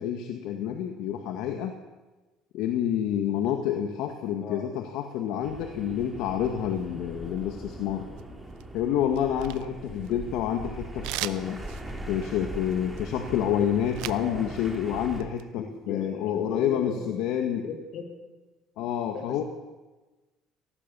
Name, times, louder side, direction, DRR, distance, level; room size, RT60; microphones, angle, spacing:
voice 1, 0.0-1.7 2.5-8.1 8.7-11.6 12.1-17.6 18.8-19.4, left 9 dB, 75° left, 5 dB, 1.9 m, -28 dB
sound 1, 5.4-15.2, right 1 dB, 5° right, 3.8 m, -41 dB
sound 2, 8.2-8.8 9.1-10.4 11.0-14.3 14.6-15.4, right 17 dB, 85° right, 0.9 m, -38 dB
voice 2, 14.0-14.6 15.6-17.1 17.6-18.2 19.1-19.4, left 5 dB, 60° left, 5 dB, 5.7 m, -37 dB
26.0 x 18.5 x 7.1 m, 1.2 s
cardioid pair, 125°, 0 cm